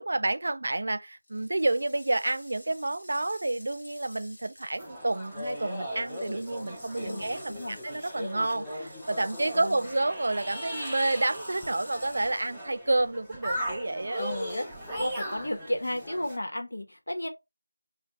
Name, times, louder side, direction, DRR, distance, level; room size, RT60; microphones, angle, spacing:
voice 1, 0.0-14.2, right 2 dB, 50° right, 0.3 m, -29 dB
sound 1, 1.2-12.9, left 1 dB, 35° left, 1.2 m, -51 dB
sound 2, 4.8-16.4, equal, ahead, 0.5 m, -38 dB
voice 2, 7.0-7.8 9.5-9.9 14.2-14.7 14.9-17.3, left 1 dB, 70° left, 0.9 m, -33 dB
3.6 x 2.2 x 2.8 m
figure-of-eight pair, 170°, 0 cm